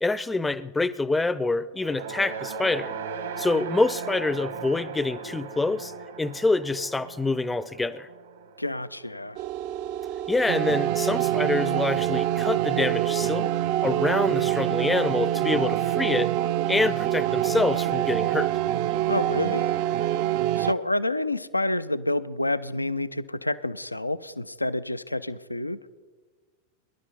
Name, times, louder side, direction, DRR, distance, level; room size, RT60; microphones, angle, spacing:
voice 1, 0.0-3.0 3.4-5.9 6.2-8.1 10.3-13.5 13.8-16.4 16.7-18.5, left 3 dB, 10° left, 17 dB, 0.5 m, -26 dB
sound 1, 1.7-10.1, right 5 dB, 65° right, 1.4 m, -38 dB
voice 2, 8.6-9.4 19.1-19.7 20.6-25.8, left 2 dB, 85° left, 15 dB, 0.4 m, -28 dB
sound 2, 9.4-20.7, right 13 dB, 45° right, 0.5 m, -25 dB
18.5 x 11.5 x 5.4 m, 1.4 s
figure-of-eight pair, 90°, 0 cm